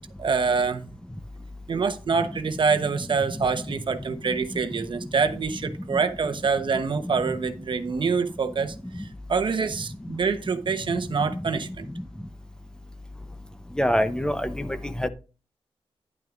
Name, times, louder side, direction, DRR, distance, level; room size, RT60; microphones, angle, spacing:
voice 1, 0.2-0.8 1.7-11.9, right 5 dB, 55° right, 1.0 m, -26 dB
voice 2, 13.8-14.7 15.0-15.1, equal, 10° left, 0.7 m, -24 dB
10.5 x 9.0 x 2.5 m
cardioid pair, 90°, 10 cm